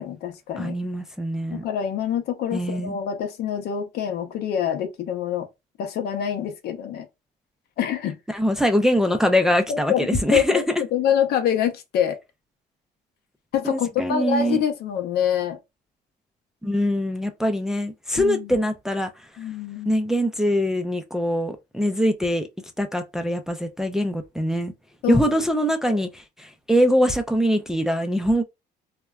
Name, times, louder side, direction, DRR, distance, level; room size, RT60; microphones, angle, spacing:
voice 1, 0.0-0.7 1.5-5.5 5.8-7.1 7.8-8.2 9.7-10.7 10.9-12.2 13.5-15.6 18.2-18.5 19.4-20.0 25.0-25.4 25.9-26.0, left 9 dB, 70° left, 0.6 m, -25 dB
voice 2, 0.6-1.6 2.5-3.0 8.3-10.8 13.6-14.6 16.6-19.3 19.9-22.5 22.8-24.7 25.1-28.4, equal, 5° right, 0.4 m, -23 dB
3.2 x 2.1 x 2.3 m
cardioid pair, 110°, 17 cm